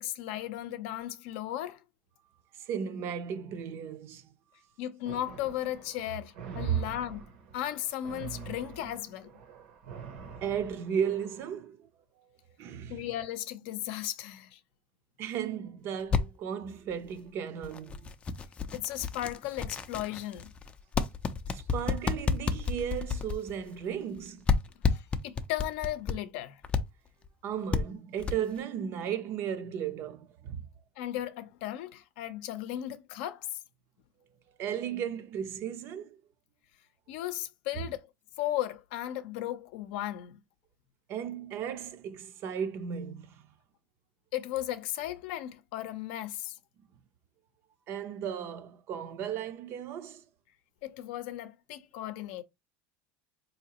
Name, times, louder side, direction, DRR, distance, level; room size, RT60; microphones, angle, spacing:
voice 1, 0.0-1.8 4.8-7.2 7.5-9.3 12.9-14.6 18.7-20.5 24.9-26.6 31.0-33.5 37.1-38.1 38.4-40.4 44.3-46.6 50.8-52.4, left 13 dB, 70° left, 0.6 m, -36 dB
voice 2, 2.6-4.3 6.6-6.8 10.4-11.9 12.6-13.0 15.2-18.1 21.5-24.4 27.4-30.7 34.6-36.2 41.1-43.5 47.9-50.2, right 8 dB, 45° right, 0.5 m, -35 dB
sound 1, 5.1-11.5, right 5 dB, 75° right, 1.0 m, -44 dB
sound 2, 16.0-16.2 16.9-17.0 17.6-24.2 24.5-26.2 26.6-26.8 27.2-27.3 27.7-27.8 28.2-28.6, left 5 dB, 20° left, 0.4 m, -30 dB
4.0 x 2.8 x 2.8 m
supercardioid pair, 140°, 6 cm